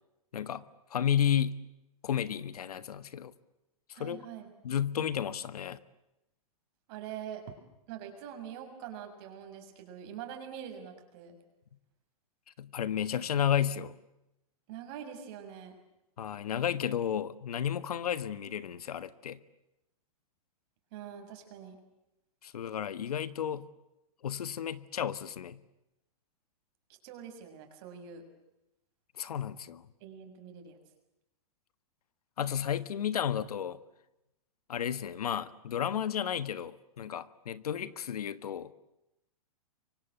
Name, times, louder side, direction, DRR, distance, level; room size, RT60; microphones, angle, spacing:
voice 1, 0.9-1.6 2.0-3.3 3.9-4.2 4.6-5.8 12.6-14.0 16.2-19.4 22.4-23.7 24.2-25.6 29.2-29.8 32.4-33.8 34.7-38.7, left 9 dB, 90° left, 15 dB, 1.6 m, -32 dB
voice 2, 4.0-4.5 6.9-7.4 7.9-11.4 14.7-15.7 20.9-21.8 27.0-28.2 30.0-30.8, right 9 dB, 40° right, 5 dB, 6.6 m, -44 dB
29.5 x 24.0 x 8.2 m, 0.90 s
hypercardioid pair, 155°, 19 cm